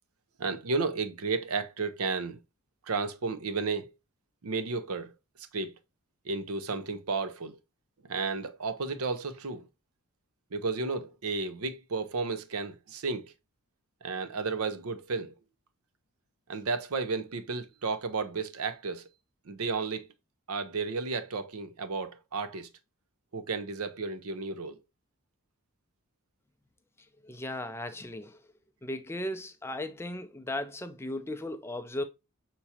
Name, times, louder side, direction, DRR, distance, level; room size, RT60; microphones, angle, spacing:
voice 1, 0.4-2.4 2.9-3.9 4.4-5.1 5.5-5.7 6.3-7.6 8.1-9.6 10.5-13.3 14.0-15.3 16.5-19.1 19.5-20.1 20.5-22.7 23.3-24.8, right 4 dB, 75° right, 0.6 m, -33 dB
voice 2, 27.2-28.5 28.8-32.0, left 1 dB, 10° left, 0.4 m, -36 dB
5.8 x 3.0 x 2.7 m
head